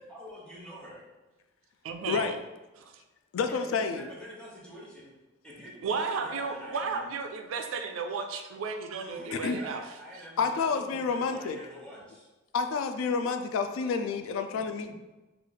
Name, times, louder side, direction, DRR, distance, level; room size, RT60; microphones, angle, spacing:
voice 1, 0.1-1.0 3.3-5.1 5.4-7.1 9.0-12.3 14.5-14.9, equal, 5° left, -6 dB, 1.0 m, -46 dB
voice 2, 1.8-2.4 2.8-2.9 5.8-9.8 10.1-10.2, right 5 dB, 75° right, 6 dB, 0.4 m, -34 dB
voice 3, 3.3-4.1 9.3-9.6 10.4-11.6 12.5-14.9, left 5 dB, 75° left, 8 dB, 0.3 m, -29 dB
3.2 x 2.3 x 3.9 m, 1.1 s
head